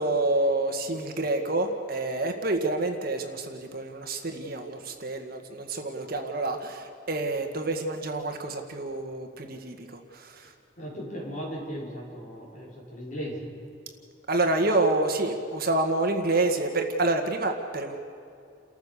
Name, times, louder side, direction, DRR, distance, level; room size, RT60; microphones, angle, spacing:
voice 1, 0.0-10.5 14.3-18.0, right 2 dB, 55° right, 5 dB, 1.8 m, -28 dB
voice 2, 10.8-13.5, equal, 45° left, -4 dB, 6.0 m, -37 dB
29.5 x 14.0 x 7.0 m, 2.4 s
head